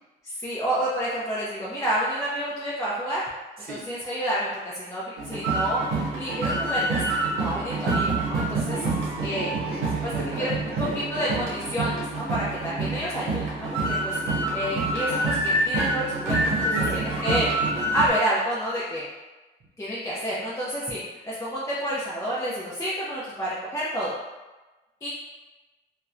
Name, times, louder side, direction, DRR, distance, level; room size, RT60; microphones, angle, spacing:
voice 1, 0.2-3.2 3.7-7.0 7.3-8.8 9.2-9.5 10.0-10.5 11.1-17.5 17.9-19.0 19.8-24.1 25.0-25.1, equal, 15° left, -8 dB, 0.5 m, -29 dB
sound 1, 5.2-18.1, right 2 dB, 90° right, 0.7 m, -27 dB
voice 2, 8.5-11.0 16.4-17.2, right 2 dB, 50° right, -2 dB, 0.7 m, -38 dB
2.7 x 2.1 x 2.4 m, 1.2 s
cardioid pair, 90°, 20 cm